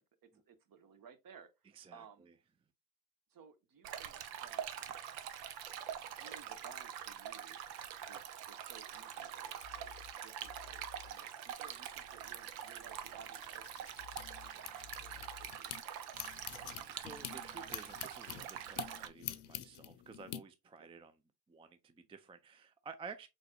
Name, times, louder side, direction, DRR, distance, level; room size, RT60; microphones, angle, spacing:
voice 1, 0.0-2.3 3.3-4.7 5.7-5.9 6.2-7.6 8.1-16.1 20.8-20.9, right 6 dB, 45° right, 0.9 m, -59 dB
voice 2, 1.7-2.0 16.5-21.1 21.5-23.3, right 5 dB, 10° right, 0.4 m, -52 dB
Stream, 3.8-19.1, right 9 dB, 80° right, 0.7 m, -45 dB
sound 1, 9.6-10.1 10.4-11.1 11.7-14.5 14.8-15.5 16.1-18.3, left 11 dB, 90° left, 0.8 m, -59 dB
sound 2, 13.5-15.8 16.1-20.4, left 12 dB, 50° left, 0.7 m, -46 dB
5.1 x 4.1 x 2.2 m
hypercardioid pair, 65°, 50 cm